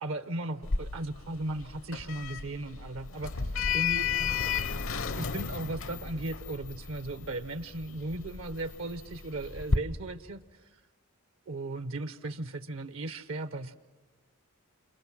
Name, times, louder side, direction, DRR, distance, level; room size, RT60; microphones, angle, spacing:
voice 1, 0.0-4.6 5.1-10.6 11.5-13.7, right 2 dB, 65° right, 11 dB, 0.9 m, -37 dB
Sliding door, 0.6-9.8, left 5 dB, 65° left, 0.8 m, -33 dB
29.5 x 28.0 x 6.1 m, 1.2 s
head